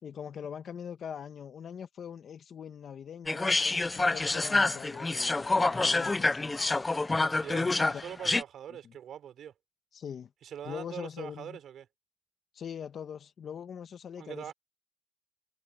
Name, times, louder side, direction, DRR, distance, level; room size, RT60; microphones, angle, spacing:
voice 1, 0.0-6.5 7.6-8.0 8.8-9.0 9.9-10.3 10.6-11.6 12.5-14.5, left 8 dB, 55° left, 1.7 m, -42 dB
sound 1, 3.3-8.4, left 3 dB, 20° left, 1.1 m, -27 dB
voice 2, 7.2-9.5 10.4-11.9 14.2-14.5, right 9 dB, 70° right, 5.6 m, -43 dB
cardioid pair, 90°, 0 cm